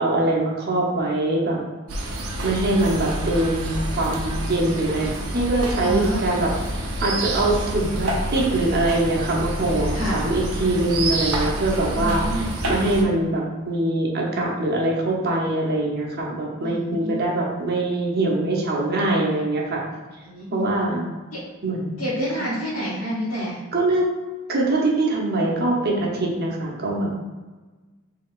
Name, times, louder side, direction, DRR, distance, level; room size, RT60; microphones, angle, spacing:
voice 1, 0.0-1.6 2.4-12.2 12.6-19.8 20.5-21.0 21.6-22.0 23.7-24.1 24.5-27.1, right 2 dB, 45° right, -2 dB, 0.8 m, -23 dB
sound 1, 1.9-13.0, right 1 dB, 80° right, 0.7 m, -28 dB
voice 2, 5.8-6.2 9.9-10.2 11.9-12.5 16.6-17.2 20.2-20.6 21.3-21.4 22.0-23.6, equal, 85° left, -11 dB, 1.4 m, -28 dB
4.7 x 3.5 x 2.4 m, 1.3 s
head